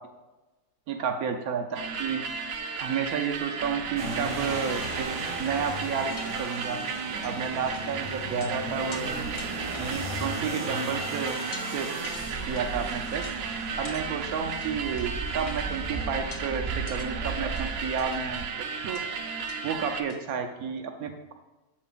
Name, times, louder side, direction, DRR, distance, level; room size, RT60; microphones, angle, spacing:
voice 1, 0.9-2.2 2.8-5.1 5.4-6.8 7.2-9.3 9.8-11.4 11.7-11.9 12.5-13.3 13.8-19.0 19.6-21.3, right 6 dB, 80° right, 4 dB, 1.2 m, -31 dB
sound 1, 1.8-20.0, right 6 dB, 65° right, 0.6 m, -34 dB
sound 2, 4.0-18.4, right 2 dB, 25° right, 1.0 m, -36 dB
sound 3, 4.8-5.0 5.6-5.7 6.2-6.8 7.2-7.4 7.7-8.5 8.9-9.1 9.4-10.1 10.7-11.0 11.5-11.7 12.0-12.7 13.2-13.4 13.9-14.1 14.6-15.1 15.5-15.6 16.3-16.5 16.9-17.1 17.6-18.3 18.9-19.1 19.5-19.6 19.9-20.2, left 5 dB, 55° left, 0.6 m, -45 dB
8.6 x 7.5 x 2.5 m, 1.1 s
omnidirectional pair, 1.5 m